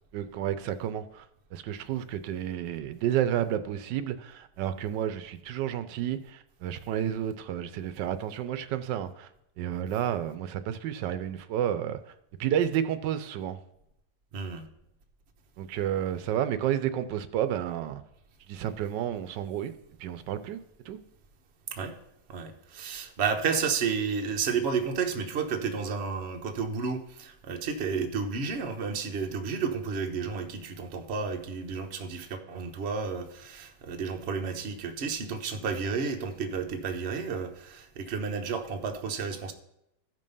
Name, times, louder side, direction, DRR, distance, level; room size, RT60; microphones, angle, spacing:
voice 1, 0.1-1.2 1.5-9.3 9.6-12.0 12.4-13.6 15.6-18.0 18.5-19.7 20.0-20.6 20.9-21.0, right 10 dB, 90° right, 1.3 m, -31 dB
voice 2, 14.3-14.6 21.7-21.9 22.3-39.5, right 5 dB, 45° right, 1.1 m, -31 dB
13.5 x 5.3 x 5.4 m
omnidirectional pair, 1.9 m